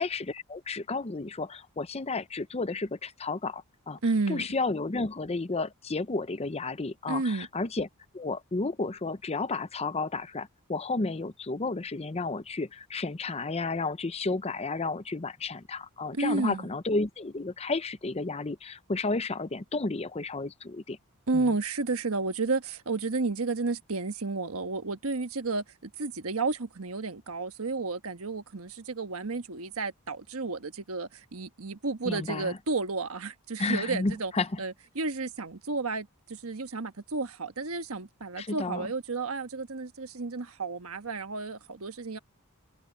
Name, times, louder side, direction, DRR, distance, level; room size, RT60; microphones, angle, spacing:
voice 1, 0.0-4.0 4.3-7.9 8.1-21.0 21.3-21.6 32.0-32.6 33.6-34.6 38.4-38.9, left 3 dB, 30° left, 0.7 m, -32 dB
voice 2, 4.0-4.5 7.1-7.5 16.1-16.7 21.3-34.3 34.6-42.2, right 3 dB, 70° right, 1.3 m, -32 dB
head